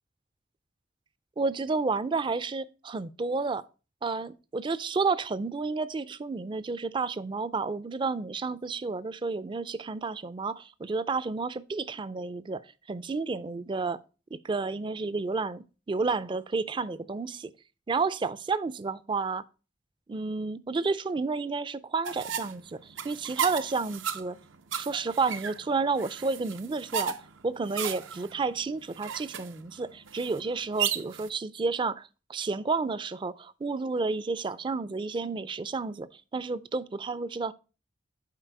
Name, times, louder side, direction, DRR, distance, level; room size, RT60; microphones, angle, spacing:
voice 1, 1.4-3.6 4.0-14.0 14.3-17.5 17.9-19.4 20.1-24.4 24.8-27.2 27.4-37.5, right 4 dB, 25° right, 0.3 m, -31 dB
sound 1, 22.0-31.3, right 8 dB, 80° right, 0.6 m, -35 dB
7.5 x 4.7 x 4.5 m
head